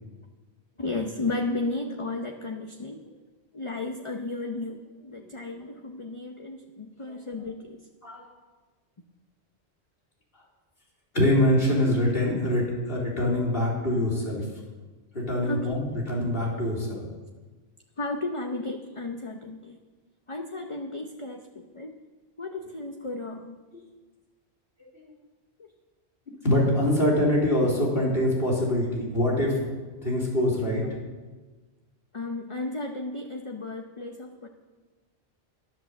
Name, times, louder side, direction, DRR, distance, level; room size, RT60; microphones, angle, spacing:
voice 1, 0.8-3.0 3.5-7.8 11.7-11.8 15.4-15.8 18.0-19.8 20.3-22.0 22.4-23.6 25.6-25.7 32.1-34.5, left 2 dB, 30° left, 3 dB, 0.8 m, -34 dB
voice 2, 11.1-14.4 15.1-17.0 25.0-25.1 26.4-29.7 30.0-30.8, left 1 dB, 60° left, -4 dB, 4.0 m, -24 dB
12.0 x 11.0 x 7.2 m, 1.3 s
omnidirectional pair, 1.1 m